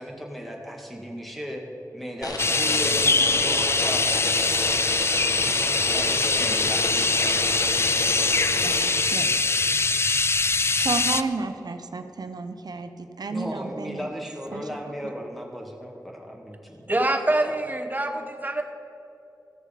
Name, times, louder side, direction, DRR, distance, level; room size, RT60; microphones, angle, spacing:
voice 1, 0.0-1.6 1.9-5.2 5.5-7.6 13.3-16.9, equal, ahead, 0 dB, 1.8 m, -36 dB
sound 1, 2.2-9.5, left 2 dB, 65° left, 1.1 m, -32 dB
sound 2, 2.4-11.2, left 3 dB, 40° left, 0.4 m, -23 dB
voice 2, 8.6-9.4 10.7-14.1 14.5-14.6, right 3 dB, 75° right, 8 dB, 0.7 m, -32 dB
voice 3, 16.9-18.6, right 1 dB, 25° right, 5 dB, 0.9 m, -25 dB
15.0 x 6.5 x 5.1 m, 2.8 s
wide cardioid pair, 70°, 7 cm